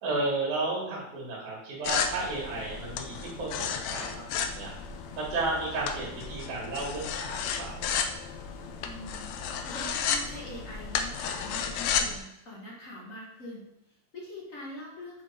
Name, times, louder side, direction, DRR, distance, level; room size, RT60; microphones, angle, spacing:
voice 1, 0.0-4.7 5.2-8.0, right 2 dB, 75° right, -4 dB, 3.1 m, -33 dB
sound 1, 1.8-12.2, left 7 dB, 80° left, 1.8 m, -33 dB
voice 2, 8.8-9.3 9.6-15.2, left 1 dB, 50° left, -4 dB, 0.9 m, -43 dB
7.4 x 3.7 x 4.7 m, 0.87 s
omnidirectional pair, 3.5 m